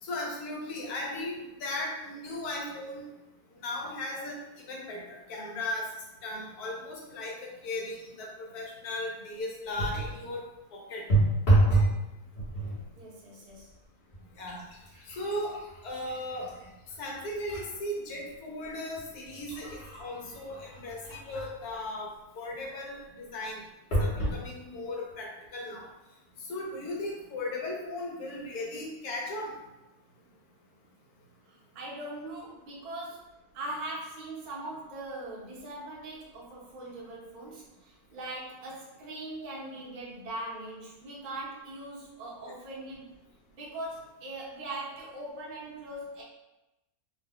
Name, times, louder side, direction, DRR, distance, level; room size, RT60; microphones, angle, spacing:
voice 1, 0.0-3.1 3.6-4.4 4.7-5.9 6.2-10.4 10.7-11.0 14.4-14.6 15.2-15.6 15.8-16.5 17.0-22.1 22.4-23.6 24.0-25.9 26.5-29.5, left 1 dB, 80° left, -1 dB, 1.2 m, -37 dB
sound 1, 9.7-10.2 11.1-12.0 12.3-12.8 13.6-13.7 14.1-17.7 18.2-18.3 19.0-21.7 23.9-24.4 25.1-25.2 25.4-25.5, right 2 dB, 50° left, 1.1 m, -29 dB
voice 2, 13.0-13.7 31.5-33.2 33.5-43.1 43.5-46.2, right 1 dB, 40° right, -5 dB, 0.6 m, -41 dB
2.9 x 2.2 x 3.5 m, 0.99 s
omnidirectional pair, 1.6 m